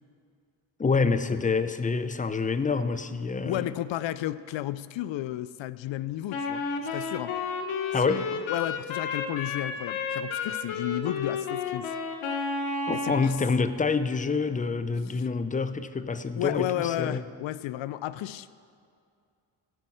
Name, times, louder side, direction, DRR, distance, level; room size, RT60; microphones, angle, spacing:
voice 1, 0.8-3.6 7.9-8.3 12.9-17.2, left 4 dB, 15° left, 12 dB, 0.6 m, -27 dB
voice 2, 3.4-6.6 6.9-7.3 8.0-8.1 8.4-11.9 12.9-13.3 16.4-18.5, left 13 dB, 70° left, 16 dB, 0.6 m, -32 dB
Wind instrument woodwind instrument, 6.3-13.3, left 4 dB, 90° left, 1.2 m, -32 dB
15.5 x 5.6 x 7.7 m, 2.3 s
cardioid pair, 70°, 47 cm